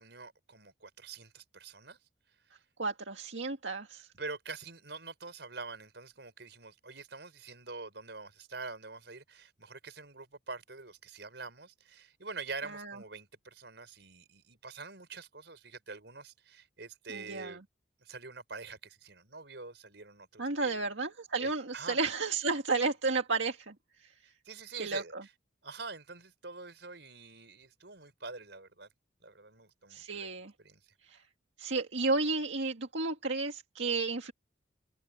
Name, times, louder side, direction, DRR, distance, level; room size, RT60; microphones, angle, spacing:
voice 1, 0.0-2.0 4.2-17.6 18.0-20.8 21.3-22.0 24.4-25.3 25.6-28.9 29.2-30.3 30.6-30.8, right 4 dB, 70° right, 4.7 m, -45 dB
voice 2, 2.8-4.1 12.7-13.0 17.1-17.6 20.4-23.7 24.8-25.2 29.9-30.5 31.1-31.2 31.6-34.3, right 3 dB, 90° right, 2.0 m, -32 dB
head